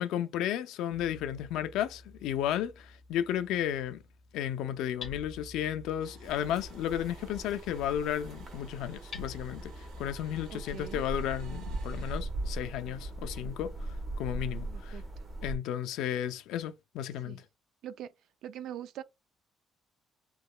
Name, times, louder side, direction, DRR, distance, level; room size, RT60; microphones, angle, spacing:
voice 1, 0.0-4.0 4.3-13.7 14.2-15.0 15.4-17.4, left 10 dB, 80° left, 0.4 m, -33 dB
Hammer, 0.9-10.7, left 3 dB, 35° left, 0.7 m, -50 dB
sound 1, 6.0-12.2, right 4 dB, 80° right, 1.5 m, -56 dB
sound 2, 6.2-15.6, right 2 dB, 25° right, 1.0 m, -40 dB
voice 2, 10.5-11.0 14.7-15.0 17.3-17.4 17.8-18.1 18.4-19.0, right 11 dB, 60° right, 0.3 m, -42 dB
3.7 x 3.0 x 2.2 m
cardioid pair, 180°, 0 cm